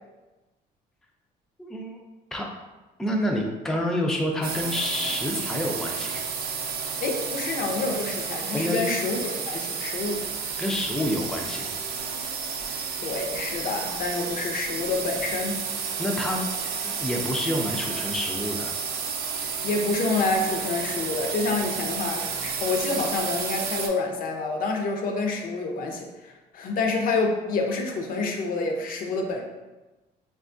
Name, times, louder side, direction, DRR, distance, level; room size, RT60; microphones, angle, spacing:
voice 1, 1.6-2.0 2.3-2.5 3.0-6.2 8.5-8.9 10.6-11.7 16.0-16.4 16.8-18.8, left 1 dB, 5° left, 0 dB, 0.3 m, -28 dB
sound 1, 4.4-23.9, right 6 dB, 60° right, 0.4 m, -31 dB
voice 2, 7.0-10.2 13.0-15.7 19.6-29.4, left 3 dB, 55° left, 3 dB, 0.5 m, -28 dB
3.4 x 2.2 x 2.5 m, 1.1 s
cardioid pair, 110°, 17 cm